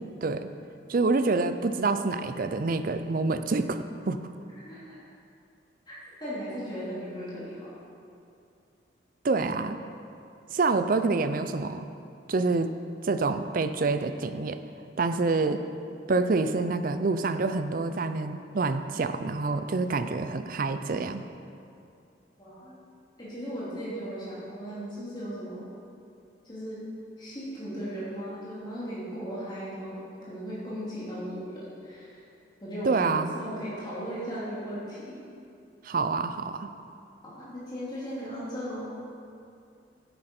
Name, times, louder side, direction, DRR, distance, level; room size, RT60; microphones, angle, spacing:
voice 1, 0.9-4.2 9.2-9.8 10.5-11.9 12.3-12.7 13.0-14.6 15.0-15.6 16.1-21.2 32.8-33.3 35.8-36.7, right 3 dB, 45° right, 10 dB, 0.4 m, -27 dB
voice 2, 6.2-7.7 22.4-22.7 23.2-25.7 26.4-26.8 27.2-32.2 32.6-33.1 33.3-35.2 37.2-38.9, equal, 25° left, -10 dB, 2.5 m, -37 dB
10.0 x 9.9 x 4.4 m, 2.5 s
head